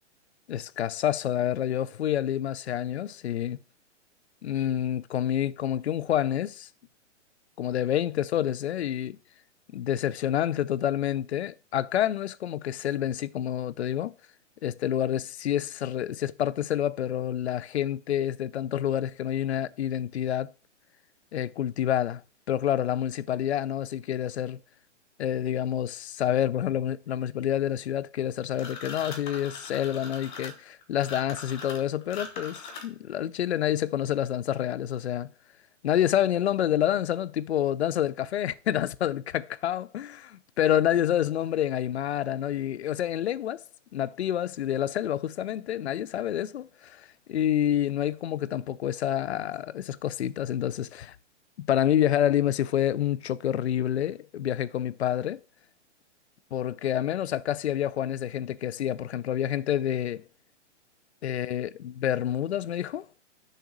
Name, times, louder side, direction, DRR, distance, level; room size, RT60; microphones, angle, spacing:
voice 1, 0.5-3.6 4.4-6.7 7.6-9.2 9.7-14.1 14.6-20.5 21.3-22.2 22.5-24.6 25.2-35.3 35.8-40.1 40.6-43.6 43.9-51.2 51.6-55.4 56.5-60.2 61.2-63.1, left 11 dB, 60° left, 0.5 m, -28 dB
sound 1, 28.5-33.1, left 4 dB, 40° left, 1.4 m, -41 dB
6.7 x 3.9 x 6.0 m
hypercardioid pair, 175°, 36 cm